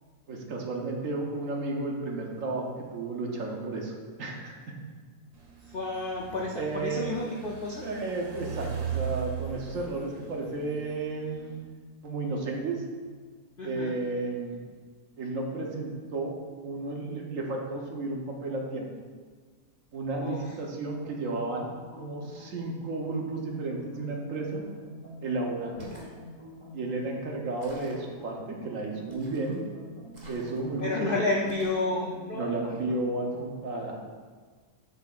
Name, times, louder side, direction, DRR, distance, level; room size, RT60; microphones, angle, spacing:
voice 1, 0.3-3.9 4.2-4.7 6.6-7.1 7.8-11.5 12.0-12.8 13.6-14.6 15.2-16.3 16.6-18.9 19.9-21.7 22.0-24.6 25.2-25.8 26.7-29.6 30.3-31.2 32.3-34.0, right 3 dB, 60° right, 0 dB, 1.2 m, -33 dB
sound 1, 5.3-11.6, right 8 dB, 85° right, 1.6 m, -39 dB
voice 2, 5.7-7.8 13.6-13.9 20.2-20.4 30.8-32.7, left 2 dB, 75° left, -1 dB, 0.5 m, -31 dB
sound 2, 20.9-33.7, left 1 dB, 50° left, 1.8 m, -47 dB
sound 3, 25.8-26.1 27.6-28.1 29.1-29.6 30.1-30.8 31.5-31.9, right 1 dB, 30° right, 1.2 m, -49 dB
8.2 x 6.4 x 2.5 m, 1.5 s
omnidirectional pair, 1.7 m